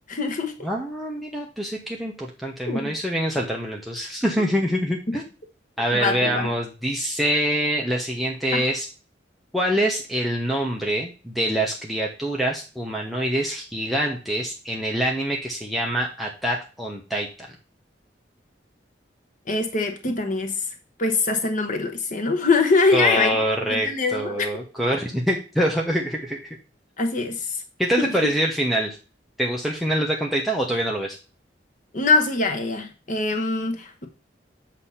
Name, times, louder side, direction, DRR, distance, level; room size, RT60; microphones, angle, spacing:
voice 1, 0.1-0.5 2.7-2.9 5.9-6.5 8.5-8.6 19.5-20.7 21.0-23.4 23.7-24.5 27.0-27.6 28.0-28.3 31.9-34.1, left 3 dB, 45° left, 5 dB, 1.0 m, -23 dB
voice 2, 0.6-5.2 5.8-8.9 9.5-17.5 22.9-26.6 27.8-29.0 29.4-31.2, equal, ahead, -2 dB, 0.9 m, -25 dB
8.3 x 2.9 x 5.6 m, 0.34 s
head